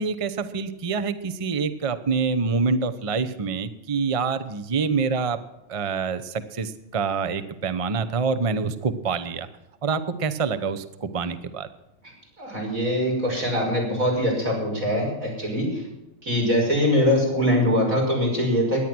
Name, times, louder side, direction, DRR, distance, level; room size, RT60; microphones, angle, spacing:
voice 1, 0.0-5.4 5.7-9.5 9.8-11.7, right 5 dB, 30° right, 11 dB, 0.8 m, -26 dB
voice 2, 12.4-15.8 16.2-18.8, equal, 90° right, -2 dB, 6.5 m, -23 dB
17.5 x 11.0 x 6.1 m, 0.93 s
omnidirectional pair, 1.4 m